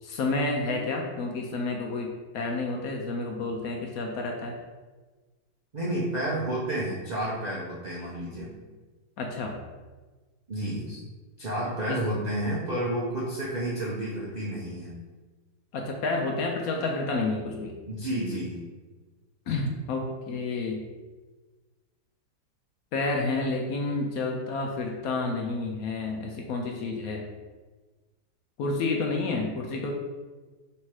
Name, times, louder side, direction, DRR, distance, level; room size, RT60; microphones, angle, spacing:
voice 1, 0.0-4.5 9.2-9.5 11.9-12.0 15.7-17.7 19.5-20.8 22.9-27.2 28.6-29.9, left 3 dB, 70° left, 1 dB, 0.9 m, -30 dB
voice 2, 5.7-8.5 10.5-11.0 11.4-15.0 17.9-18.6, right 1 dB, 65° right, -6 dB, 0.4 m, -30 dB
3.2 x 2.8 x 4.6 m, 1.3 s
omnidirectional pair, 1.8 m